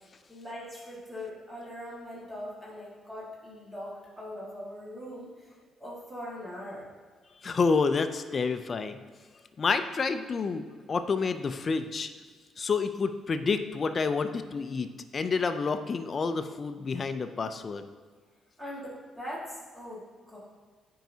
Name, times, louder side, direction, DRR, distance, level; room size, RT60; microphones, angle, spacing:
voice 1, 0.3-5.5 5.8-6.9 18.6-20.4, equal, 15° right, -7 dB, 1.7 m, -41 dB
voice 2, 7.4-9.0 9.6-12.1 12.6-17.8, left 4 dB, 40° left, 9 dB, 0.4 m, -29 dB
9.0 x 4.7 x 2.7 m, 1.5 s
cardioid pair, 90°, 0 cm